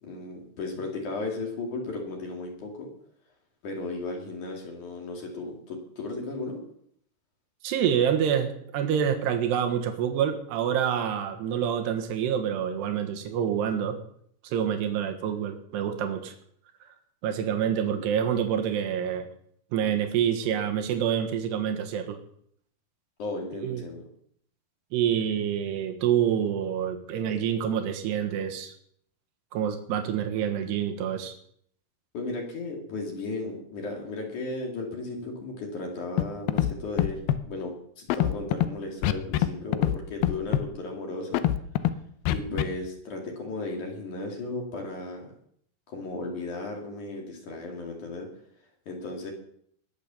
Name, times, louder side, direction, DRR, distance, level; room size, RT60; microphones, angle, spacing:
voice 1, 0.0-2.9 3.6-6.6 17.8-18.1 23.2-24.0 32.1-41.5 42.3-45.2 45.9-48.3 48.9-49.3, left 3 dB, 50° left, 0 dB, 3.7 m, -35 dB
voice 2, 7.6-14.0 14.4-16.3 17.2-19.3 19.7-22.2 23.6-23.8 24.9-28.8 29.5-31.4, right 8 dB, 80° right, 5 dB, 3.5 m, -27 dB
Scratching (performance technique), 36.2-36.3 36.5-36.7 37.0-37.4 38.1-38.7 39.0-39.5 39.7-40.0 40.2-40.6 41.3-41.9 42.3-42.6, left 13 dB, 75° left, 2.5 m, -23 dB
20.5 x 7.2 x 7.0 m, 0.67 s
omnidirectional pair, 4.8 m